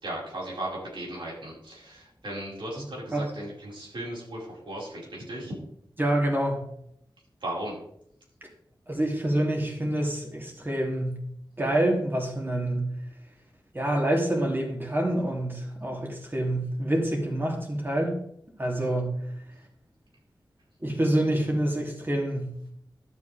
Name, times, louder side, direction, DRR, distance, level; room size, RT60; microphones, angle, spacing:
voice 1, 0.0-5.6 7.4-7.8, right 1 dB, 80° right, -5 dB, 5.0 m, -36 dB
voice 2, 6.0-6.6 8.9-11.2 11.6-12.9 13.7-18.1 18.6-19.2 20.8-22.7, right 1 dB, 25° right, 0 dB, 2.8 m, -27 dB
12.5 x 8.1 x 3.5 m, 0.70 s
wide cardioid pair, 90°, 8 cm